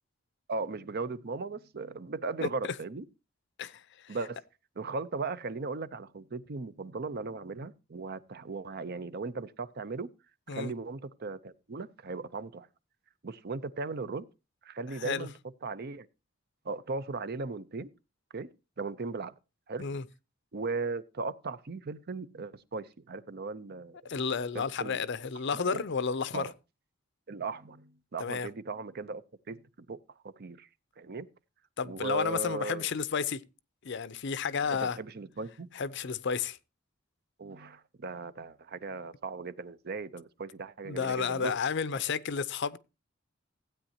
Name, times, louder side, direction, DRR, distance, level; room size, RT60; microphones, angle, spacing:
voice 1, 0.5-3.0 4.1-4.4 4.8-10.1 10.5-12.7 13.2-14.3 14.6-15.3 15.6-16.1 16.6-17.9 18.3-18.5 18.8-19.3 19.7-19.9 20.5-24.1 24.5-25.0 25.5-25.8 26.3-26.5 27.3-29.2 29.5-30.0 30.2-30.7 31.0-31.3 31.8-32.9 34.7-35.7 37.4-41.5, right 3 dB, 50° right, 0.6 m, -37 dB
voice 2, 2.4-2.7 3.6-4.2 10.5-10.7 15.0-15.3 19.8-20.0 24.0-26.5 28.2-28.5 31.8-33.4 33.8-35.0 35.7-36.6 40.8-42.8, left 5 dB, 65° left, 0.6 m, -32 dB
15.5 x 8.9 x 2.8 m
head